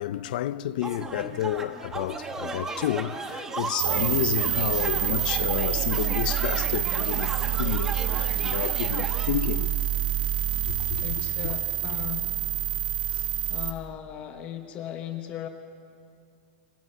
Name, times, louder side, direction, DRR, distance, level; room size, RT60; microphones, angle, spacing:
voice 1, 0.0-9.8 10.6-11.1 11.4-11.5 13.1-13.2, left 13 dB, 50° left, 0.5 m, -30 dB
sound 1, 0.8-9.3, right 3 dB, 10° right, 1.0 m, -36 dB
sound 2, 3.8-13.7, right 11 dB, 65° right, 2.0 m, -27 dB
voice 2, 11.0-12.3 13.5-15.5, left 11 dB, 20° left, 1.0 m, -37 dB
29.5 x 26.0 x 5.6 m
supercardioid pair, 180°, 6 cm